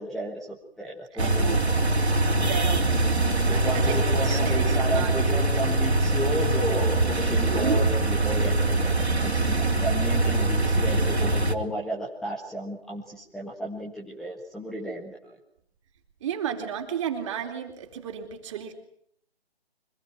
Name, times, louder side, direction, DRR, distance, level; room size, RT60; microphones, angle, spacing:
voice 1, 0.0-1.6 3.5-15.3, right 1 dB, ahead, -3 dB, 1.5 m, -33 dB
voice 2, 1.1-1.6 2.4-2.9 3.5-5.3 16.2-18.7, right 8 dB, 30° right, 4 dB, 3.9 m, -33 dB
sound 1, 1.2-11.5, right 2 dB, 85° right, 3.0 m, -23 dB
25.0 x 19.5 x 9.0 m, 0.68 s
figure-of-eight pair, 150°, 32 cm